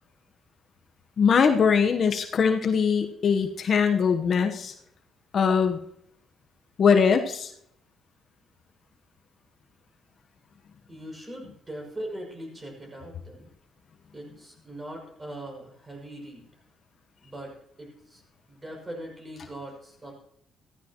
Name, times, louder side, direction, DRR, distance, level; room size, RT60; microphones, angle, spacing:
voice 1, 1.2-4.7 5.3-5.8 6.8-7.5, left 6 dB, 55° left, 6 dB, 1.0 m, -21 dB
voice 2, 10.9-13.5 14.1-16.5 17.2-17.5 17.8-18.2 18.5-20.2, right 1 dB, 25° right, 0 dB, 6.3 m, -40 dB
15.0 x 14.0 x 3.0 m, 0.69 s
cardioid pair, 90°, 0 cm